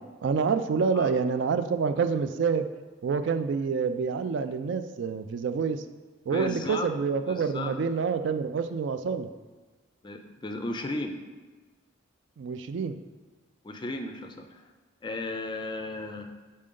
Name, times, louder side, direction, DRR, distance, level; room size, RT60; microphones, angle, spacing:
voice 1, 0.2-2.7 3.0-5.8 6.3-9.3 12.4-13.0, right 5 dB, 65° right, 10 dB, 0.3 m, -27 dB
voice 2, 6.3-6.9 7.3-7.7 10.0-11.2 13.6-14.6 15.0-16.3, left 2 dB, 20° left, 6 dB, 0.4 m, -35 dB
6.3 x 4.2 x 3.7 m, 1.3 s
head